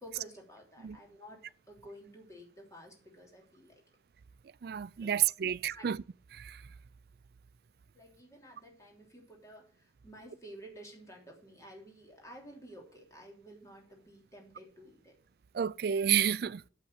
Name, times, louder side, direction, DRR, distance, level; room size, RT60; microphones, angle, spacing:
voice 1, 0.0-1.4 1.7-3.8 4.8-5.1 5.7-5.9 7.9-15.2, equal, 20° left, 3.2 m, -52 dB
voice 2, 4.6-6.0 6.3-6.6 15.5-16.6, right 9 dB, 60° right, 0.4 m, -30 dB
8.5 x 7.5 x 6.7 m
head